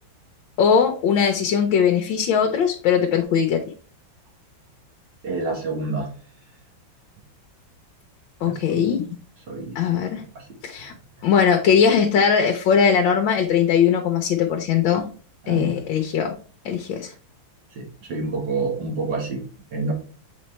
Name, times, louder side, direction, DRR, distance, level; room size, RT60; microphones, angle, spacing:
voice 1, 0.6-3.6 8.4-9.1 9.7-10.2 10.6-10.9 11.2-15.1 15.5-16.3 16.6-17.1, left 7 dB, 75° left, 3 dB, 1.5 m, -20 dB
voice 2, 5.2-6.1 8.4-8.9 9.5-10.0 10.4-10.6 15.4-15.7 17.7-19.9, right 3 dB, 65° right, 1 dB, 1.9 m, -28 dB
7.0 x 4.3 x 3.1 m, 0.40 s
omnidirectional pair, 2.2 m